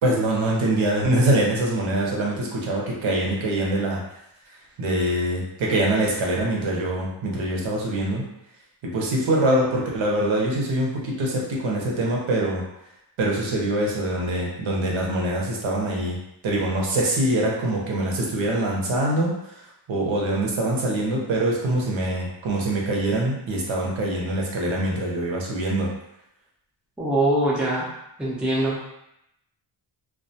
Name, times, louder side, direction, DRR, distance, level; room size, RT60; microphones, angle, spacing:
voice 1, 0.0-4.0 4.8-8.2 8.8-12.6 13.2-16.2 16.4-25.9, right 1 dB, 75° right, -2 dB, 0.8 m, -24 dB
voice 2, 27.0-27.9 28.2-28.9, right 1 dB, ahead, -6 dB, 0.4 m, -23 dB
2.3 x 2.2 x 2.7 m, 0.82 s
wide cardioid pair, 140°, 47 cm